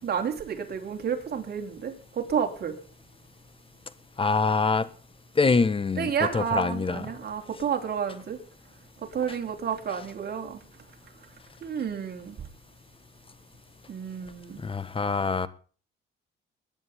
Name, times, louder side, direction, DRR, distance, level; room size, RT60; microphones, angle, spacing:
voice 1, 0.0-2.8 6.0-8.4 9.1-10.6 11.6-12.4 13.9-14.6, right 7 dB, 55° right, 3.8 m, -30 dB
voice 2, 4.2-4.9 5.3-7.1 9.3-9.4 14.6-15.5, left 4 dB, 25° left, 1.4 m, -25 dB
21.0 x 11.0 x 3.7 m
cardioid pair, 90°, 20 cm